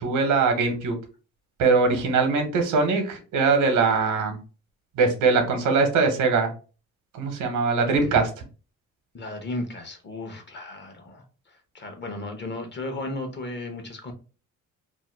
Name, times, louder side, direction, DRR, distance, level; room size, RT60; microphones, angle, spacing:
voice 1, 0.0-0.9 1.6-4.4 5.0-6.5 7.1-8.3, right 4 dB, 90° right, 6 dB, 0.9 m, -21 dB
voice 2, 9.1-14.1, left 2 dB, 35° left, 5 dB, 0.8 m, -35 dB
2.7 x 2.2 x 3.2 m, 0.36 s
cardioid pair, 90°, 30 cm